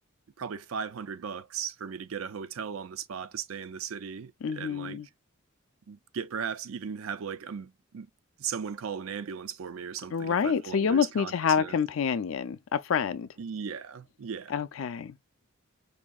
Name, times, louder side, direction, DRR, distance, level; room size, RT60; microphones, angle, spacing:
voice 1, 0.4-5.0 5.9-8.1 8.4-11.8 13.4-14.5, right 7 dB, 75° right, 0.5 m, -37 dB
voice 2, 4.4-5.1 10.1-13.3 14.5-15.2, left 6 dB, 70° left, 0.4 m, -27 dB
5.0 x 2.6 x 2.3 m
head